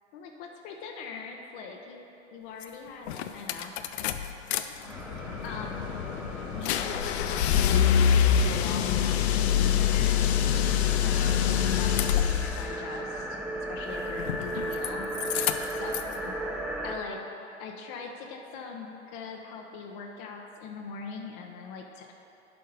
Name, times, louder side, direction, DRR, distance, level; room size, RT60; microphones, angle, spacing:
voice 1, 0.1-2.0 2.3-3.7 4.5-4.9 5.4-5.9 6.5-7.8 8.1-10.2 10.6-13.4 13.7-15.1 15.7-16.3 16.8-17.2 17.6-22.1, left 5 dB, 45° left, 2 dB, 0.9 m, -41 dB
sound 1, 2.6-2.7 3.1-4.6 4.9-12.7 14.2-14.9 15.1-16.1, left 9 dB, 65° left, 0.5 m, -25 dB
sound 2, 4.9-16.9, right 1 dB, 5° right, 0.6 m, -37 dB
11.0 x 5.1 x 4.1 m, 2.9 s
hypercardioid pair, 100°, 36 cm